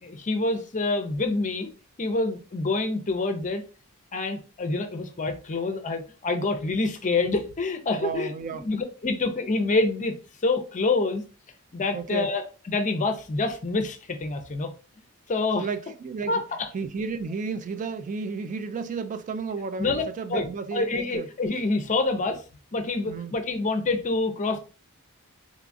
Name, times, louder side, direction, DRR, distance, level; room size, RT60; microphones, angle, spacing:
voice 1, 0.0-1.7 2.0-3.6 4.1-10.1 10.4-11.2 11.7-14.7 15.3-15.7 16.3-16.7 19.8-20.0 20.3-22.4 22.7-24.6, left 3 dB, 35° left, 0.5 m, -27 dB
voice 2, 8.0-8.7 11.9-12.3 15.6-16.4 16.7-21.3 23.1-23.4, right 5 dB, 35° right, 0.3 m, -32 dB
3.9 x 2.3 x 2.5 m
head